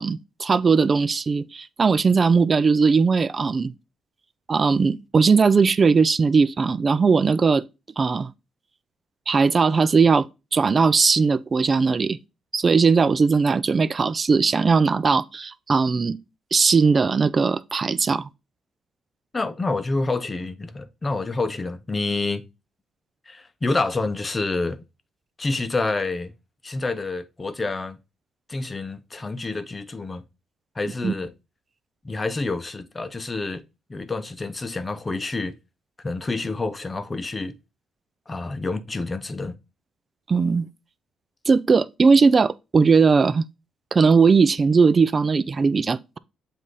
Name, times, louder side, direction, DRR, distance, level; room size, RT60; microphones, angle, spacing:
voice 1, 0.0-3.7 4.5-7.6 8.0-8.3 9.3-10.3 10.5-12.2 12.5-16.2 16.5-18.3 31.0-31.1 40.3-40.6 41.5-43.4 43.9-46.2, right 5 dB, 35° right, 0.4 m, -19 dB
voice 2, 19.3-22.4 23.3-24.8 25.4-26.3 26.6-28.0 28.5-30.2 30.8-31.3 32.0-33.6 33.9-35.5 36.0-37.5 38.3-39.6, left 3 dB, 25° left, 0.7 m, -28 dB
7.5 x 2.7 x 4.9 m
cardioid pair, 90°, 0 cm